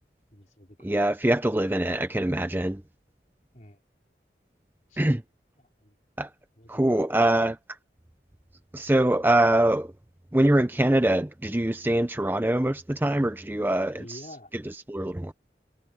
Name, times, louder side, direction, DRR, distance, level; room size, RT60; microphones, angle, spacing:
voice 1, 0.3-1.1 3.5-3.8 4.9-5.0 5.6-6.0 6.6-7.3 13.9-14.5, left 1 dB, 40° left, 4.4 m, -48 dB
voice 2, 0.8-2.8 5.0-5.2 6.2-6.3 6.7-7.6 8.7-9.9 10.3-14.2 14.9-15.3, right 1 dB, 10° right, 0.6 m, -23 dB
head